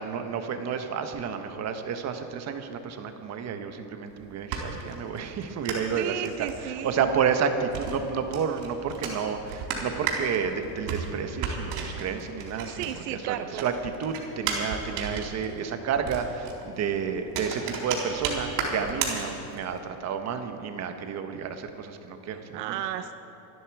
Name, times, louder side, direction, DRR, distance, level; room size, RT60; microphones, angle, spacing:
voice 1, 0.0-12.9 13.2-13.7 14.0-22.8, right 6 dB, 35° right, 7 dB, 1.2 m, -30 dB
sound 1, 4.1-13.2 13.5-19.8, right 6 dB, 65° right, 3.9 m, -34 dB
voice 2, 6.0-7.1 12.7-13.7 22.5-23.1, right 11 dB, 80° right, 10 dB, 0.9 m, -33 dB
25.5 x 10.0 x 4.8 m, 3.0 s
supercardioid pair, 140°, 47 cm